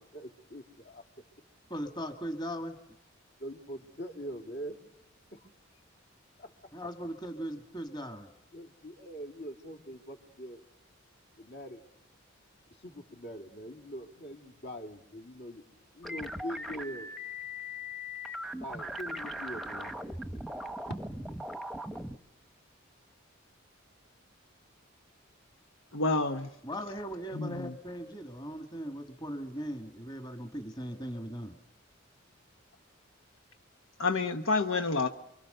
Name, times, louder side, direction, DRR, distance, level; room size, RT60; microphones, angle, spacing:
voice 1, 0.1-1.0 3.4-4.8 5.3-5.5 6.4-6.7 8.5-10.6 11.4-11.8 12.7-15.6 15.9-17.1 18.6-20.0 20.9-21.0, equal, 55° left, 4 dB, 3.3 m, -43 dB
voice 2, 1.7-2.8 6.7-8.3 26.6-31.6, equal, 20° left, 5 dB, 2.0 m, -39 dB
sound 1, 16.0-22.2, equal, ahead, 1.1 m, -39 dB
voice 3, 25.9-26.5 27.3-27.7 34.0-35.1, left 3 dB, 75° left, 6 dB, 1.2 m, -29 dB
29.0 x 24.0 x 6.8 m, 0.79 s
head